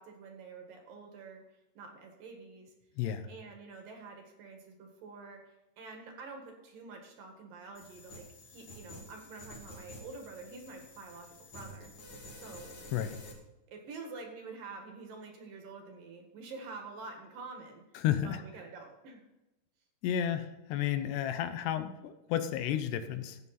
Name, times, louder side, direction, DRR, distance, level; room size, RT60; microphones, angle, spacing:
voice 1, 0.0-1.4 1.7-2.7 3.3-5.4 5.8-11.9 12.4-12.8 13.7-17.8 18.2-19.2, right 4 dB, 60° right, 3 dB, 3.3 m, -47 dB
voice 2, 3.0-3.3 12.9-13.2 18.0-18.4 20.0-23.4, left 10 dB, 80° left, 9 dB, 3.0 m, -32 dB
sound 1, 7.7-13.3, left 1 dB, 40° left, 3.0 m, -50 dB
14.0 x 9.2 x 4.2 m, 0.97 s
omnidirectional pair, 4.8 m